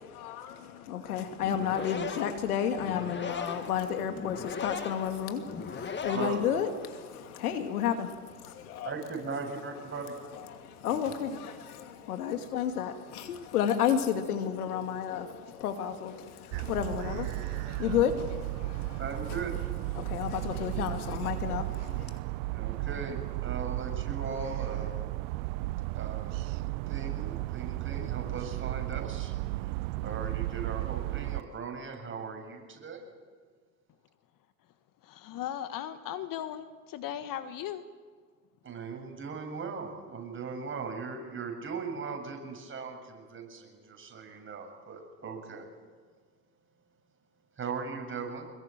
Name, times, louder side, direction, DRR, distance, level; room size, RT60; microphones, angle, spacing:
voice 1, 0.7-8.9 10.3-19.0 20.0-22.2, left 8 dB, 80° left, 6 dB, 2.6 m, -32 dB
sound 1, 1.3-7.0, left 5 dB, 25° left, 2.4 m, -39 dB
voice 2, 6.1-6.4 8.8-10.1 19.0-19.5 22.5-24.9 26.0-26.4 26.9-29.3 30.0-33.0 38.6-45.7 47.6-48.5, right 5 dB, 25° right, 2 dB, 7.4 m, -38 dB
sound 2, 16.5-31.4, right 19 dB, 60° right, 0.7 m, -34 dB
voice 3, 35.0-37.8, left 10 dB, 50° left, 10 dB, 1.6 m, -37 dB
25.5 x 21.5 x 9.1 m, 1.5 s
hypercardioid pair, 75°, 44 cm